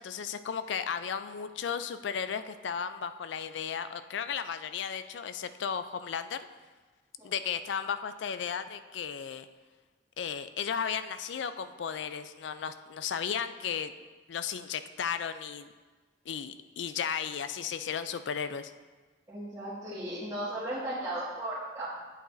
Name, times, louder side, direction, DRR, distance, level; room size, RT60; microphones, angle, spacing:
voice 1, 0.0-6.5 7.2-9.5 10.2-13.9 14.3-15.7 16.3-18.7, left 7 dB, 75° left, 12 dB, 0.4 m, -35 dB
voice 2, 19.3-21.9, right 1 dB, 15° right, -16 dB, 2.1 m, -36 dB
8.7 x 7.9 x 2.6 m, 1.3 s
head